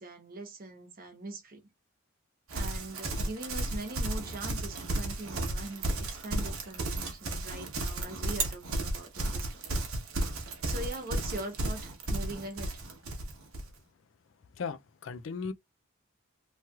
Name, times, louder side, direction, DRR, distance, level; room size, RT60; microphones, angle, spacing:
voice 1, 0.0-1.6 2.5-9.6 10.6-12.8, right 2 dB, 45° right, 1.0 m, -42 dB
Livestock farm animals working animals, 2.5-13.7, right 2 dB, 85° right, 1.0 m, -33 dB
voice 2, 14.6-15.5, left 5 dB, 65° left, 0.4 m, -37 dB
3.0 x 3.0 x 2.3 m
head